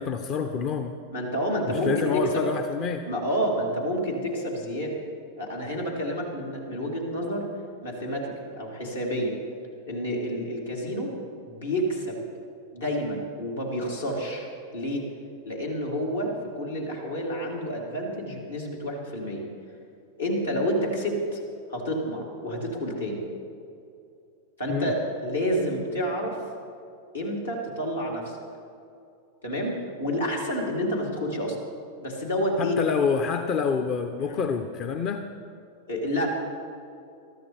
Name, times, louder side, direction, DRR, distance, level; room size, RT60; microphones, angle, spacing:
voice 1, 0.0-1.0 1.7-3.0 24.7-24.9 32.6-35.2, left 6 dB, 35° left, 7 dB, 0.8 m, -27 dB
voice 2, 1.1-2.5 3.1-5.0 5.4-7.5 7.8-9.3 9.9-11.1 11.5-12.2 12.7-14.5 14.7-15.0 15.5-19.5 20.2-21.4 21.7-23.2 24.6-26.4 27.1-28.4 29.4-31.6 32.0-32.8 34.2-34.4 35.9-36.3, equal, 75° left, -3 dB, 3.6 m, -29 dB
23.0 x 13.5 x 3.5 m, 2.6 s
figure-of-eight pair, 90°, 0 cm